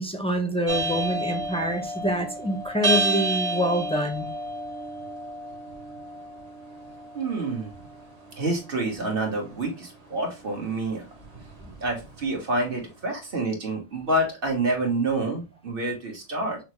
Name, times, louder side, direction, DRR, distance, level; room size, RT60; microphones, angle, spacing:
voice 1, 0.0-4.3, equal, 10° left, 0.3 m, -26 dB
sound 1, 0.7-12.8, right 2 dB, 40° right, 0.9 m, -32 dB
voice 2, 7.1-7.7 8.4-11.0 11.8-16.6, right 2 dB, 60° right, 1.4 m, -28 dB
5.9 x 2.0 x 3.0 m
omnidirectional pair, 1.1 m